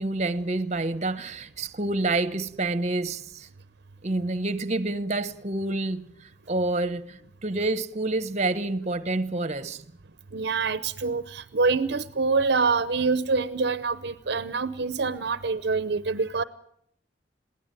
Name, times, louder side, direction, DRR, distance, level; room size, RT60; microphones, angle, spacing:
voice 1, 0.0-3.5 4.0-6.1 6.5-9.8, right 2 dB, 40° right, 1.1 m, -28 dB
voice 2, 10.3-16.4, right 4 dB, 65° right, 0.8 m, -25 dB
22.0 x 17.0 x 9.0 m
head